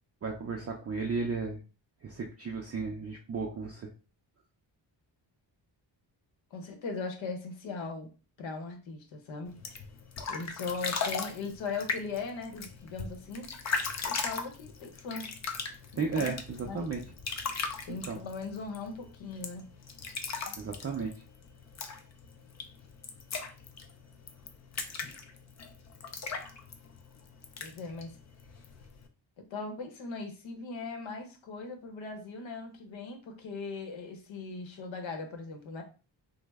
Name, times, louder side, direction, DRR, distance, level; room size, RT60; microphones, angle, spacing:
voice 1, 0.2-1.6 2.0-3.9 16.0-17.0 17.9-18.2 20.6-21.1, right 4 dB, 35° right, 1 dB, 0.4 m, -34 dB
voice 2, 6.5-8.1 8.4-9.6 10.3-13.5 14.1-15.3 16.1-16.3 16.6-16.9 17.9-19.7 20.4-20.6 27.6-28.2 29.5-35.8, left 4 dB, 85° left, 5 dB, 0.8 m, -39 dB
sound 1, 9.5-29.1, left 5 dB, 40° left, 0.4 m, -39 dB
3.1 x 2.0 x 3.4 m, 0.34 s
wide cardioid pair, 150°, 45 cm